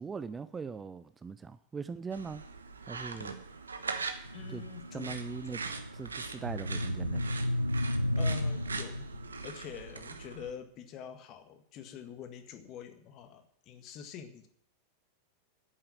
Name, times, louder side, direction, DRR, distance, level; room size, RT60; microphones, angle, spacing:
voice 1, 0.0-2.4 2.9-3.4 4.5-4.6 4.9-7.4, right 5 dB, 15° right, 0.5 m, -41 dB
sound 1, 2.1-10.5, right 4 dB, 75° right, 1.1 m, -41 dB
sound 2, 4.2-9.5, left 1 dB, 90° right, 0.5 m, -33 dB
voice 2, 4.3-5.2 8.1-9.1 9.4-14.5, left 8 dB, 35° left, 1.7 m, -46 dB
10.0 x 8.8 x 8.5 m
figure-of-eight pair, 90°, 0 cm